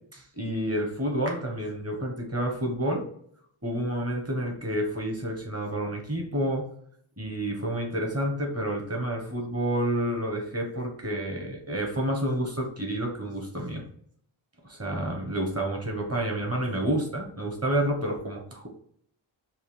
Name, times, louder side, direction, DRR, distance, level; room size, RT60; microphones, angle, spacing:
voice 1, 0.1-3.0 3.6-6.7 7.2-13.8 14.6-18.7, right 1 dB, 30° right, 1 dB, 1.3 m, -29 dB
5.5 x 2.4 x 3.4 m, 0.64 s
wide cardioid pair, 80°, 49 cm